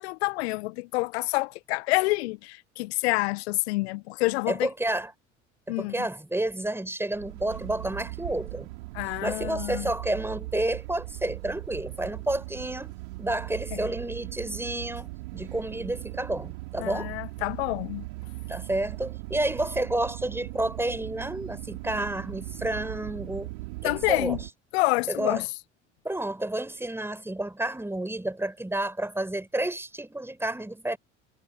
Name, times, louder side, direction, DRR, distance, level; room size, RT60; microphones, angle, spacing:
voice 1, 0.0-4.7 5.7-6.1 8.9-9.9 16.8-18.1 23.8-24.4 24.7-25.5, left 23 dB, 60° left, 1.2 m, -28 dB
voice 2, 4.5-5.1 5.8-8.7 9.2-12.9 13.2-17.1 18.5-23.5 23.8-24.4 25.1-25.4 26.0-31.0, right 1 dB, 5° right, 4.9 m, -30 dB
sound 1, 7.1-24.5, right 23 dB, 65° right, 3.8 m, -39 dB
figure-of-eight pair, 60°, 35 cm